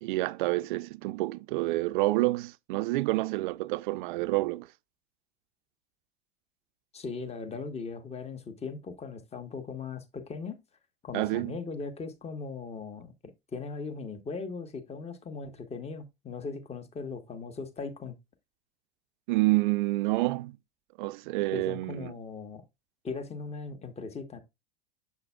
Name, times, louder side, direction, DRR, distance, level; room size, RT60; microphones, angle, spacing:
voice 1, 0.0-4.7 11.1-11.6 19.3-20.6 21.0-22.1, right 20 dB, 55° right, 0.5 m, -28 dB
voice 2, 6.9-10.6 11.0-18.2 21.5-22.6 23.0-24.4, left 4 dB, 20° left, 1.3 m, -39 dB
7.1 x 6.6 x 2.3 m
figure-of-eight pair, 85°, 30 cm